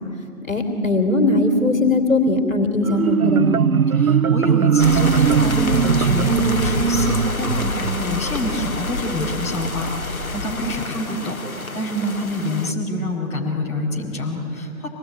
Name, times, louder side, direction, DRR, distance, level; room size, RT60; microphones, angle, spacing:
voice 1, 0.4-3.6, left 2 dB, 70° left, 5 dB, 3.3 m, -19 dB
Marimba xylophone, 2.8-8.4, right 7 dB, 85° right, 0.6 m, -19 dB
voice 2, 3.9-14.9, left 1 dB, 20° left, -4 dB, 4.6 m, -27 dB
sound 1, 4.8-12.7, left 3 dB, 85° left, 1.6 m, -27 dB
26.0 x 20.0 x 9.9 m, 2.6 s
figure-of-eight pair, 155°, 42 cm